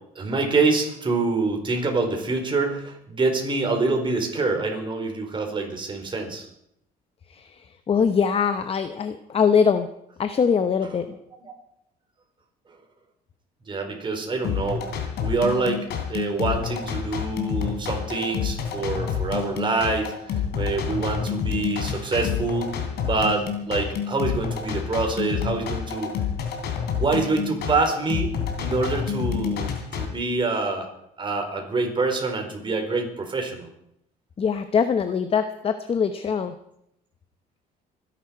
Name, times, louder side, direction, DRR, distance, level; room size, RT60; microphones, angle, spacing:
voice 1, 0.2-6.5 11.4-11.5 13.7-26.1 26.9-28.3 28.6-30.9 31.2-33.7, right 3 dB, 30° right, 3 dB, 4.5 m, -26 dB
voice 2, 7.9-9.9 10.2-11.2 34.4-36.5, left 6 dB, 35° left, 10 dB, 0.9 m, -22 dB
sound 1, 14.4-30.1, left 7 dB, 75° left, 3.4 m, -28 dB
25.0 x 11.0 x 4.7 m, 0.75 s
cardioid pair, 110°, 17 cm